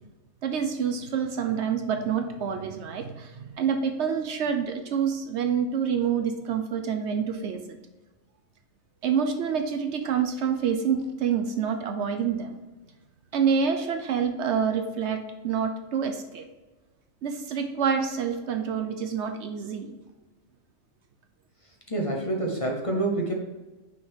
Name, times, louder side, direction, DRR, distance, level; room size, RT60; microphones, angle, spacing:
voice 1, 0.4-7.6 9.0-12.6 13.3-15.2 15.4-16.4 17.2-20.0, right 7 dB, 65° right, 6 dB, 0.9 m, -27 dB
voice 2, 21.9-23.3, right 2 dB, 30° left, 0 dB, 1.0 m, -27 dB
6.2 x 3.6 x 4.7 m, 1.2 s
omnidirectional pair, 1.3 m